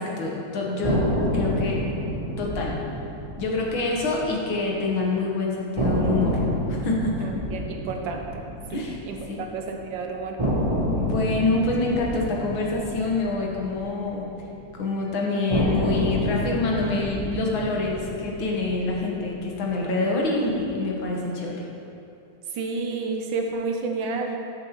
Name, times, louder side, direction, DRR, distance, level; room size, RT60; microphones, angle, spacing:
voice 1, 0.0-1.8 2.4-2.7 3.4-6.4 6.7-7.3 8.7-9.0 9.3-9.5 11.0-14.3 14.7-21.6, left 3 dB, 70° left, -2 dB, 1.9 m, -26 dB
sound 1, 0.8-4.9 5.2-5.3 5.8-9.8 10.4-14.7 15.5-19.9, equal, 50° right, 0.3 m, -29 dB
voice 2, 7.2-8.4 8.7-10.4 22.5-24.4, right 4 dB, 70° right, 3 dB, 1.3 m, -30 dB
11.5 x 6.7 x 3.0 m, 2.8 s
omnidirectional pair, 2.3 m